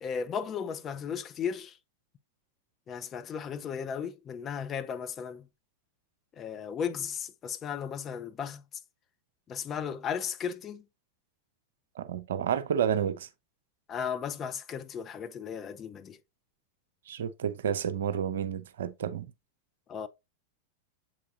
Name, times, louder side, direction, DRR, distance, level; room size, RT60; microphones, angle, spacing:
voice 1, 0.0-1.7 2.9-5.4 6.4-8.6 9.5-10.8 13.9-16.2 19.9-20.1, left 7 dB, 25° left, 0.6 m, -35 dB
voice 2, 12.0-13.3 17.1-19.3, right 8 dB, 60° right, 0.6 m, -30 dB
7.3 x 4.6 x 2.8 m
figure-of-eight pair, 90°, 0 cm